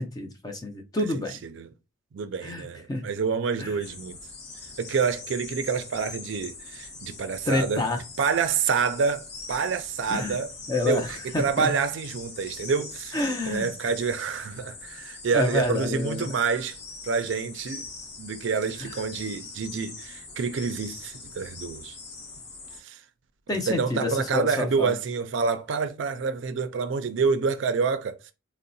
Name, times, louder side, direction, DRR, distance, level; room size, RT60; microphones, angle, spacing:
voice 1, 0.0-1.4 2.4-3.0 3.6-3.7 7.5-8.0 10.1-10.4 10.7-11.7 13.1-13.7 15.3-16.3 18.8-18.9 23.5-25.0, left 2 dB, 20° left, 0.4 m, -28 dB
voice 2, 1.1-1.7 2.1-4.2 4.8-7.9 8.2-13.2 13.5-16.8 17.0-17.9 18.2-22.0 22.8-23.0 23.5-28.3, right 5 dB, 65° right, 0.4 m, -28 dB
sound 1, 3.8-22.8, left 3 dB, 55° left, 0.7 m, -42 dB
3.7 x 2.0 x 2.6 m
head